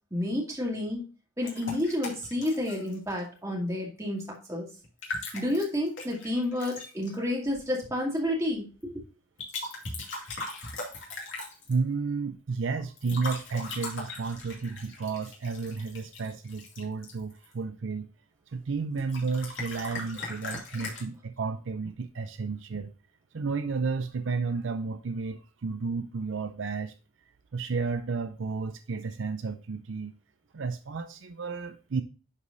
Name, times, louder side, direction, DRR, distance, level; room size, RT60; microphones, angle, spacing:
voice 1, 0.1-1.0 1.4-4.7 5.3-9.0, left 1 dB, 15° right, 2.3 m, -30 dB
sound 1, 1.4-3.2 4.8-7.1 9.4-11.8 13.0-17.5 19.0-21.0, left 3 dB, 65° left, 2.5 m, -39 dB
voice 2, 11.7-18.1 18.5-22.9 23.3-26.9 27.5-30.1 30.5-32.0, right 4 dB, 65° right, 0.5 m, -32 dB
11.0 x 4.9 x 2.6 m
head